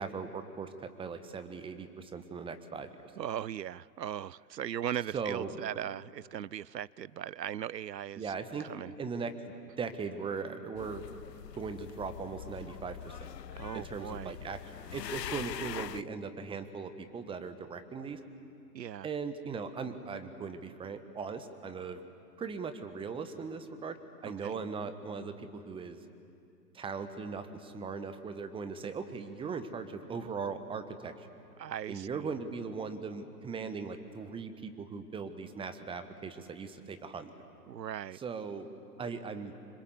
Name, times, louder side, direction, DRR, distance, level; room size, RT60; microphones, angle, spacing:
voice 1, 0.0-2.9 5.1-5.5 8.2-8.7 9.0-9.3 9.8-11.0 11.5-13.3 13.7-14.6 14.9-18.2 19.0-22.1 22.4-24.0 24.2-26.0 26.7-31.3 31.9-37.3 38.1-38.7 39.0-39.5, right 5 dB, 10° right, 10 dB, 1.3 m, -39 dB
voice 2, 3.2-8.3 8.6-8.9 13.5-14.3 18.7-19.1 24.2-24.5 31.6-32.1 37.7-38.2, right 10 dB, 80° right, 23 dB, 0.5 m, -38 dB
sound 1, 10.8-16.0, left 10 dB, 85° left, 0.5 m, -43 dB
26.0 x 25.5 x 8.2 m, 2.6 s
figure-of-eight pair, 110°, 49 cm